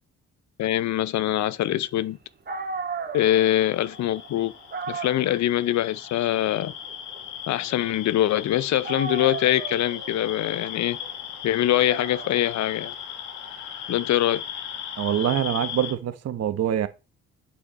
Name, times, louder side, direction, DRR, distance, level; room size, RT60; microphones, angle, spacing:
voice 1, 0.6-2.2 3.1-4.5 4.9-6.7 7.5-11.0 11.4-12.9 13.9-14.4, left 13 dB, 65° left, 0.7 m, -23 dB
Dog, 2.2-2.3 2.5-8.5 8.8-15.6, right 4 dB, 35° right, 1.8 m, -38 dB
sound 1, 3.4-15.9, left 9 dB, 90° left, 1.7 m, -37 dB
voice 2, 15.0-16.9, right 10 dB, 55° right, 1.1 m, -25 dB
8.3 x 5.9 x 4.1 m
cardioid pair, 90°, 30 cm